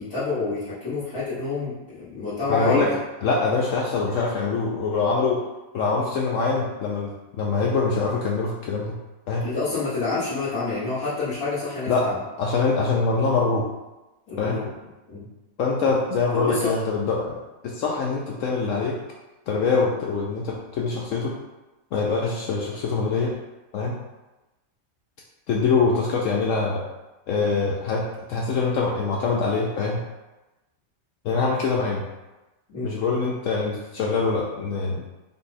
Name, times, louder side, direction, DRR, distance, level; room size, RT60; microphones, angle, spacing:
voice 1, 0.0-2.8 9.4-12.1 14.3-14.7 15.1-15.3 16.3-16.8 32.7-32.9, left 3 dB, 90° left, -15 dB, 2.0 m, -28 dB
voice 2, 2.5-2.9 3.2-5.4 5.7-9.0 9.3-9.5 11.9-13.7 14.4-14.7 15.6-19.0 19.5-21.3 21.9-23.3 23.7-24.0 25.5-26.8 27.3-30.0 31.2-32.0 32.8-35.0, left 4 dB, 70° left, -2 dB, 0.9 m, -24 dB
5.3 x 2.3 x 4.1 m, 1.1 s
omnidirectional pair, 1.5 m